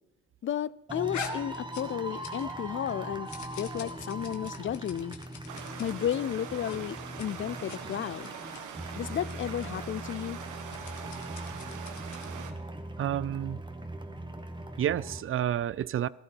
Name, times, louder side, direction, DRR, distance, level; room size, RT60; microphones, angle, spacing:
voice 1, 0.4-3.3 3.6-5.2 5.8-8.3 9.0-10.4, left 10 dB, 40° left, 0.4 m, -33 dB
sound 1, 0.9-15.2, right 1 dB, 15° right, 1.3 m, -40 dB
sound 2, 1.1-2.6 2.9-6.2 6.6-6.8 7.1-7.3 7.5-7.8 8.2-8.6 9.2-9.3 9.6-9.7 10.5-12.4, left 7 dB, 70° left, 1.6 m, -45 dB
Stream, 5.5-12.5, right 7 dB, 85° right, 1.3 m, -43 dB
voice 2, 13.0-13.6 14.8-16.1, right 11 dB, 45° right, 0.4 m, -29 dB
15.5 x 13.0 x 4.5 m
cardioid pair, 90°, 30 cm